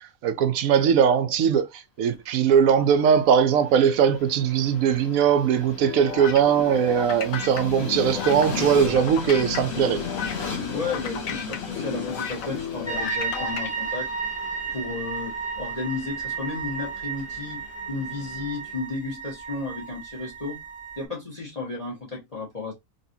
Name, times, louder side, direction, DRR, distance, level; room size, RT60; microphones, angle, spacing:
voice 1, 0.0-10.0, right 8 dB, 80° right, 1.1 m, -20 dB
Train, 2.6-18.7, left 6 dB, 55° left, 1.2 m, -37 dB
sound 1, 5.8-13.7, left 7 dB, 75° left, 1.1 m, -34 dB
voice 2, 10.7-14.1 14.7-15.3 15.6-17.6 17.9-20.6 21.0-22.7, left 3 dB, 30° left, 1.5 m, -33 dB
sound 2, 12.9-21.0, right 5 dB, 15° left, 0.9 m, -33 dB
4.0 x 3.1 x 2.7 m
omnidirectional pair, 1.4 m